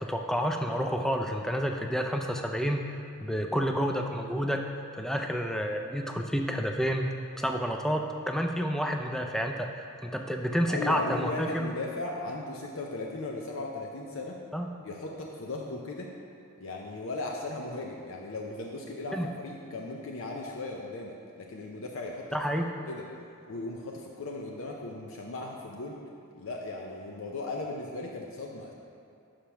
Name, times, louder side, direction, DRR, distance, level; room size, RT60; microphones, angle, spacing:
voice 1, 0.0-4.6 5.0-7.1 7.4-9.7 10.0-11.7 14.5-14.7 19.1-19.3 22.3-22.7, equal, ahead, 3 dB, 0.4 m, -29 dB
voice 2, 10.7-14.4 14.8-16.1 16.6-22.3 22.5-23.0 23.5-26.0 26.4-28.7, left 2 dB, 65° left, 0 dB, 0.6 m, -37 dB
5.7 x 5.1 x 5.8 m, 2.6 s
head